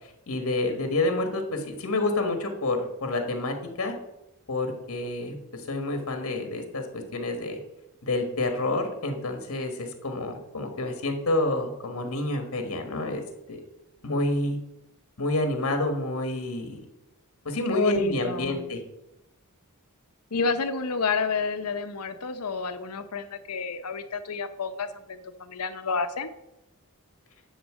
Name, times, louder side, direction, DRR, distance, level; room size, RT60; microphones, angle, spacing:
voice 1, 0.0-3.9 4.5-7.6 8.0-13.6 14.0-14.6 15.2-16.8 17.4-18.8, left 2 dB, 65° left, 6 dB, 1.3 m, -28 dB
voice 2, 17.7-18.6 20.3-26.3, left 4 dB, 90° left, 10 dB, 0.8 m, -30 dB
10.5 x 4.0 x 7.4 m, 0.91 s
head